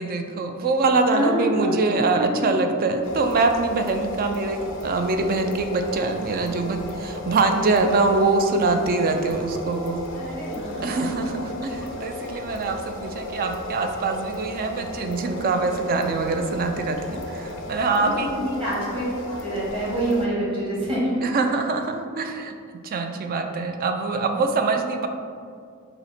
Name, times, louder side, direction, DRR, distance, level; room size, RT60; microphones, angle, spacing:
voice 1, 0.0-10.0 10.8-18.3 21.2-22.5 22.8-25.1, right 3 dB, 40° right, 6 dB, 0.3 m, -24 dB
voice 2, 1.1-2.6 10.1-11.0 17.9-21.2, equal, 25° right, -7 dB, 1.4 m, -27 dB
sound 1, 3.0-20.3, left 1 dB, 60° left, 0.4 m, -35 dB
5.4 x 2.1 x 4.2 m, 2.3 s
head